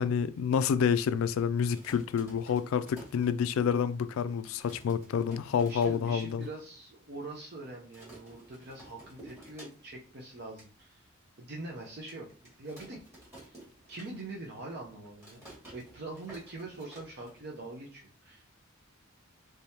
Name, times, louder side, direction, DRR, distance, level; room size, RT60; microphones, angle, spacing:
voice 1, 0.0-6.5, left 7 dB, 70° left, 0.3 m, -28 dB
sound 1, 1.7-3.8 4.2-4.3 4.5-6.5 6.9-7.0 7.2-7.5 7.9-10.1 10.4-10.7 11.2-11.3 12.1-14.5 14.8-17.7, right 1 dB, 10° right, 2.0 m, -53 dB
voice 2, 5.7-11.0 11.4-12.3 12.6-13.0 13.4-13.6 13.9-15.4 15.7-18.5, right 2 dB, 50° right, 0.7 m, -43 dB
3.5 x 3.3 x 2.8 m
head